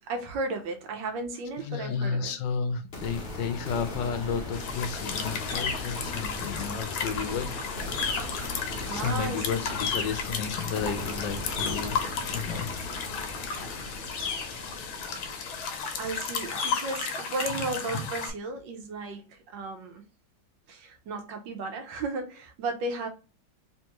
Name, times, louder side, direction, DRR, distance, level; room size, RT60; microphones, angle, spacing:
voice 1, 0.0-2.3 8.8-9.4 15.6-15.7 16.0-20.0 20.7-23.1, right 3 dB, 70° right, 1.4 m, -34 dB
voice 2, 1.6-8.0 8.7-12.7 13.0-13.5, left 6 dB, 75° left, 1.3 m, -33 dB
sound 1, 2.9-16.9, left 2 dB, 45° left, 0.7 m, -38 dB
sound 2, 4.5-18.3, left 5 dB, 90° left, 1.6 m, -33 dB
3.5 x 3.4 x 3.0 m
omnidirectional pair, 2.2 m